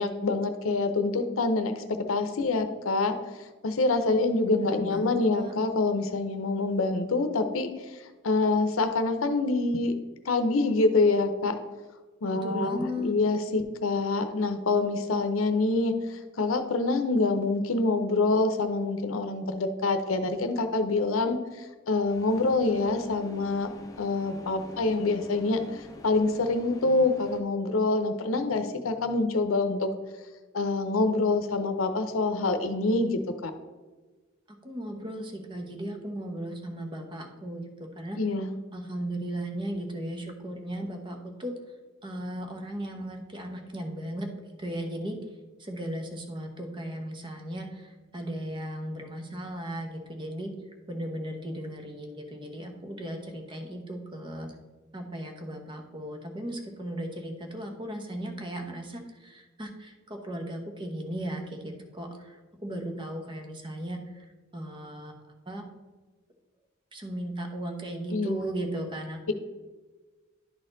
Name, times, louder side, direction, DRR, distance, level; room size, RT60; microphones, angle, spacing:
voice 1, 0.0-3.2 3.6-8.0 8.2-10.0 10.2-11.6 12.2-23.7 24.0-29.9 30.5-33.5 38.2-38.5 68.1-68.4, left 3 dB, 90° left, 8 dB, 0.7 m, -26 dB
voice 2, 4.6-5.5 12.4-13.1 34.6-38.2 38.7-41.5 42.0-44.3 44.6-45.2 45.6-50.5 50.9-54.5 54.9-65.6 66.9-69.3, right 1 dB, 25° right, 4 dB, 1.0 m, -36 dB
sound 1, 22.1-27.4, left 1 dB, 20° left, 0.7 m, -47 dB
11.0 x 4.2 x 3.9 m, 1.3 s
head